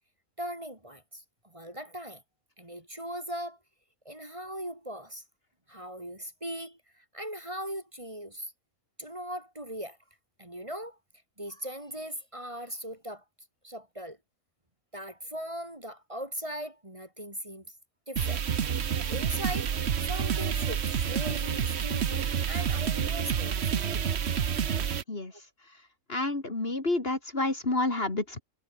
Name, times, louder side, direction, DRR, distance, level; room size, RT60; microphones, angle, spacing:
voice 1, 0.4-2.2 2.6-3.6 4.0-5.2 5.7-8.5 9.0-10.0 10.4-11.0 11.4-13.2 13.6-14.2 14.9-17.7 18.1-18.4 18.9-24.6 25.3-25.4, equal, 20° right, 3.4 m, -39 dB
sound 1, 18.2-25.0, right 8 dB, 50° right, 1.2 m, -29 dB
voice 2, 26.1-28.4, left 2 dB, 40° left, 3.2 m, -29 dB
omnidirectional pair, 1.5 m